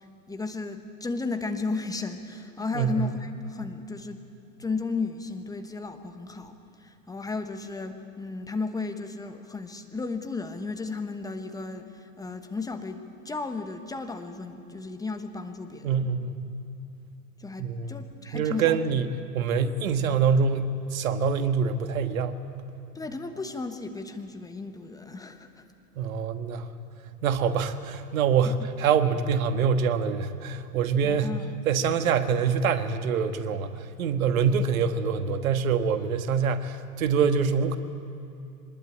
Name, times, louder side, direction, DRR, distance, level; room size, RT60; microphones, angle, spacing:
voice 1, 0.0-4.2 4.6-16.0 17.4-19.0 22.9-25.6 28.4-28.7 31.0-31.5, left 3 dB, 10° left, 6 dB, 1.1 m, -34 dB
voice 2, 2.7-3.1 15.8-16.4 17.6-17.9 18.3-19.1 19.3-22.4 26.0-26.7 27.2-31.4 31.7-37.8, right 6 dB, 55° right, 9 dB, 1.6 m, -25 dB
24.0 x 20.5 x 8.7 m, 2.8 s
figure-of-eight pair, 110°, 48 cm